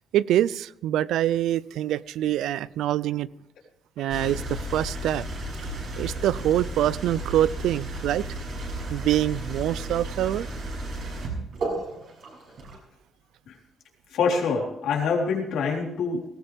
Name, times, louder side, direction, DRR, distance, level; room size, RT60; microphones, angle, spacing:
voice 1, 0.1-3.3 4.0-5.3 6.0-8.3 8.9-10.5, right 12 dB, 85° right, 0.4 m, -25 dB
sound 1, 4.1-12.8, right 1 dB, 65° right, 6.5 m, -33 dB
voice 2, 14.1-16.3, left 5 dB, 80° left, 3.9 m, -25 dB
18.5 x 15.5 x 3.5 m
cardioid pair, 90°, 0 cm